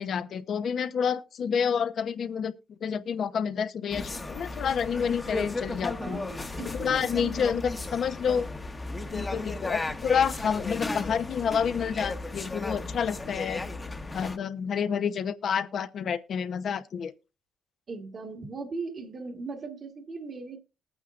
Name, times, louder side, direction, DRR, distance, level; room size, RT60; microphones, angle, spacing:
voice 1, 0.0-2.5 2.8-6.3 6.7-8.5 9.1-13.6 14.1-17.1, left 7 dB, 60° left, 0.8 m, -29 dB
sound 1, 3.9-14.4, left 2 dB, 20° left, 1.1 m, -35 dB
voice 2, 6.0-7.7 17.9-20.6, right 4 dB, 45° right, 1.5 m, -39 dB
20.0 x 9.0 x 2.5 m
cardioid pair, 90°, 0 cm